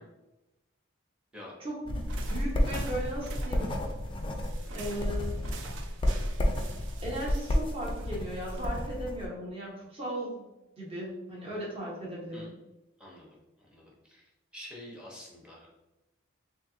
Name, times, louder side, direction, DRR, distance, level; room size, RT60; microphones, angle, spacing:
voice 1, 1.6-2.0 2.3-3.8 4.7-5.4 7.0-10.5 10.8-12.5, right 1 dB, 30° right, -4 dB, 1.0 m, -37 dB
sound 1, 1.8-9.3, left 1 dB, 25° left, 0.3 m, -31 dB
sound 2, 2.0-9.0, right 4 dB, 60° right, 0.4 m, -48 dB
voice 2, 13.0-13.3 13.6-14.2 14.5-15.7, left 1 dB, 5° right, -4 dB, 0.8 m, -47 dB
3.8 x 2.7 x 2.6 m, 0.99 s
head